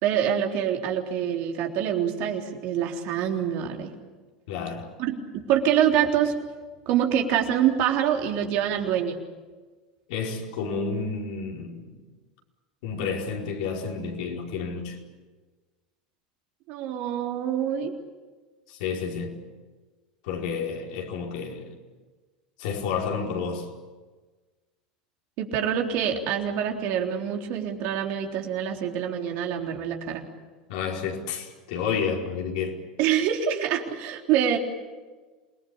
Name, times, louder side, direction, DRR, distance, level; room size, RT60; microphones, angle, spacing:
voice 1, 0.0-3.9 5.0-6.3 6.9-9.2 16.7-17.9 25.4-30.2 33.0-34.6, right 9 dB, 60° right, 3.6 m, -25 dB
voice 2, 4.5-4.9 10.1-12.0 12.8-15.0 18.7-19.3 20.2-21.7 22.6-23.7 30.7-32.8, left 5 dB, 70° left, 5.1 m, -30 dB
28.0 x 19.5 x 8.7 m
hypercardioid pair, 90°, 4 cm